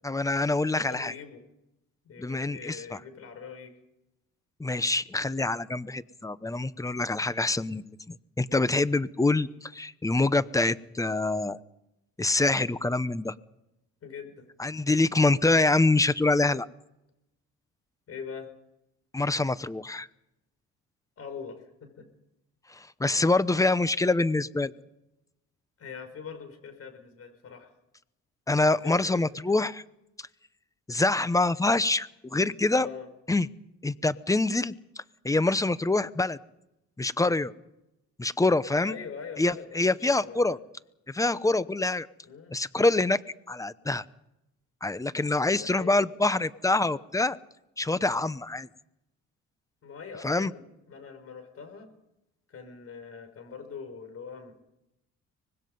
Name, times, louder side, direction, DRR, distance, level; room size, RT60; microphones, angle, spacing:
voice 1, 0.0-1.1 2.2-3.0 4.6-11.6 12.2-13.3 14.6-16.7 19.1-20.1 22.7-24.7 28.5-29.8 30.9-32.9 33.3-33.5 33.8-34.7 35.2-36.4 37.0-37.5 38.2-39.0 39.4-40.6 41.1-42.1 42.5-43.2 43.5-44.0 44.8-47.4 47.8-48.7 50.2-50.5, left 2 dB, 10° left, 15 dB, 0.8 m, -25 dB
voice 2, 0.7-1.4 2.0-3.8 14.0-14.5 14.7-14.8 18.1-18.5 21.2-22.1 25.8-27.7 28.8-29.2 32.8-33.1 38.8-40.6 42.2-42.5 45.5-46.0 49.8-51.9 52.5-54.6, left 6 dB, 50° left, 7 dB, 5.8 m, -43 dB
24.5 x 20.5 x 5.5 m, 0.87 s
cardioid pair, 110°, 30 cm